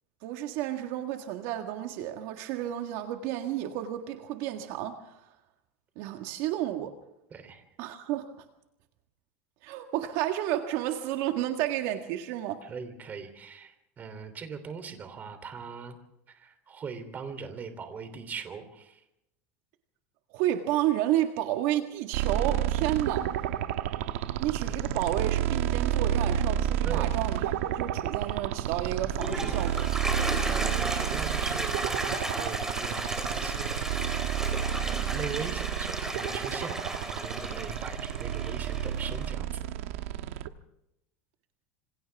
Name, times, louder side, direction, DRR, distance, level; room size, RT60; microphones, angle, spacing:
voice 1, 0.2-5.2 6.0-7.0 7.8-8.3 9.6-12.6 20.3-23.3 24.4-29.9, right 12 dB, 60° right, 5 dB, 1.7 m, -31 dB
voice 2, 7.3-7.6 12.6-16.0 16.3-19.0 22.9-23.0 26.8-27.1 30.4-39.7, right 5 dB, 25° right, 9 dB, 3.3 m, -40 dB
sound 1, 22.1-40.5, right 10 dB, 85° right, 1.3 m, -30 dB
Toilet flush, 29.0-39.3, right 1 dB, 5° right, 3.7 m, -34 dB
27.0 x 26.5 x 3.6 m, 0.84 s
supercardioid pair, 150°, 7 cm